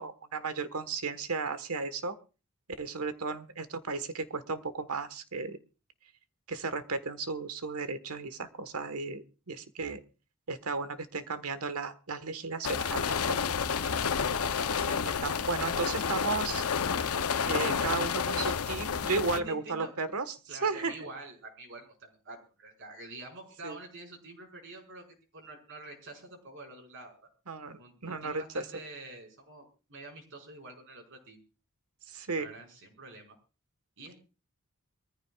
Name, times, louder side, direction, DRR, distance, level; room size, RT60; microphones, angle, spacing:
voice 1, 0.0-2.1 2.8-5.6 6.5-10.0 10.5-13.4 14.7-14.9 15.2-16.6 17.4-21.1 23.6-23.8 27.5-28.6 32.1-32.5, right 4 dB, 80° right, 11 dB, 1.4 m, -34 dB
sound 1, 12.6-19.4, left 6 dB, 80° left, 0.7 m, -30 dB
voice 2, 19.1-19.9 20.5-27.3 27.8-31.4 32.3-33.3 34.0-34.2, right 2 dB, 60° right, 1 dB, 5.2 m, -47 dB
23.5 x 14.5 x 2.4 m, 0.33 s
head